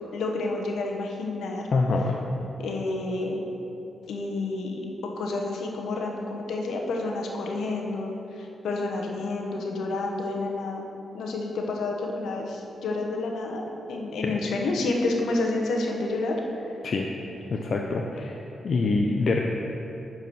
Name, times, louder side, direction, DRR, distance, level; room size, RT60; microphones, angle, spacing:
voice 1, 0.1-1.7 2.6-3.4 4.1-4.8 5.2-10.8 11.1-16.8, left 2 dB, 80° left, 1 dB, 1.1 m, -29 dB
voice 2, 1.7-2.2 14.2-14.4 16.8-17.1 17.5-18.4 18.6-19.4, left 3 dB, 60° left, 1 dB, 0.6 m, -25 dB
10.0 x 4.7 x 6.1 m, 3.0 s
supercardioid pair, 45°, 0 cm